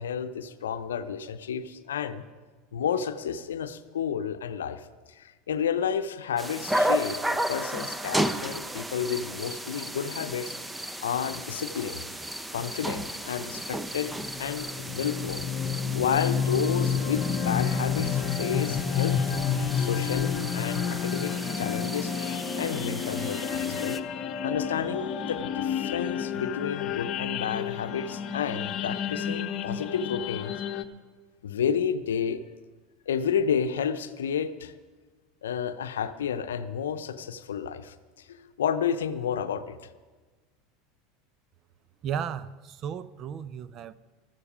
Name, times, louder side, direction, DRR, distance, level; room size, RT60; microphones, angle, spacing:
voice 1, 0.0-2.2 2.7-10.5 11.0-12.0 12.5-14.1 14.4-15.5 15.9-19.2 19.8-22.1 22.6-24.0 24.4-30.5 31.4-32.4 33.1-34.7 35.4-39.8, left 7 dB, 80° left, 11 dB, 0.7 m, -31 dB
sound 1, 6.4-24.0, right 1 dB, 10° right, 0.7 m, -34 dB
sound 2, 14.1-30.8, left 7 dB, 45° left, 0.9 m, -30 dB
voice 2, 42.0-44.0, right 8 dB, 45° right, 16 dB, 0.6 m, -34 dB
13.5 x 13.5 x 5.0 m, 1.3 s
hypercardioid pair, 85°, 0 cm